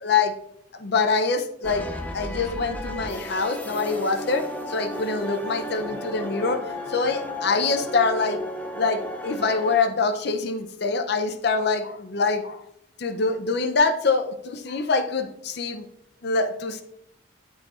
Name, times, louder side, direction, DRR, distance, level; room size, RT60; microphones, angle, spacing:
voice 1, 0.0-0.3 0.8-1.9 2.1-6.6 6.9-8.4 8.7-12.6 13.0-15.9 16.2-16.8, left 4 dB, 55° left, 7 dB, 0.6 m, -24 dB
sound 1, 1.6-9.8, left 1 dB, 10° left, 0.5 m, -34 dB
11.5 x 4.3 x 2.5 m, 0.74 s
head